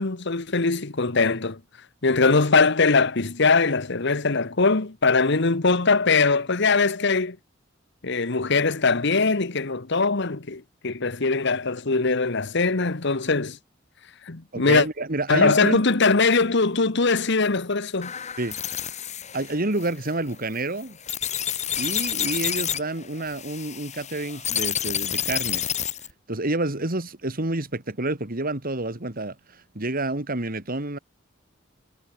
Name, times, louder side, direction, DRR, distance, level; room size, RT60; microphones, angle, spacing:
voice 1, 0.0-1.6 2.0-7.4 8.0-13.6 14.3-14.9 15.3-18.1, left 4 dB, 60° left, 1.4 m, -21 dB
voice 2, 14.5-15.8 18.4-18.6 19.3-21.0 21.8-25.7 26.3-31.0, right 2 dB, 50° right, 2.7 m, -29 dB
sound 1, 18.0-26.1, left 9 dB, 35° left, 2.0 m, -29 dB
head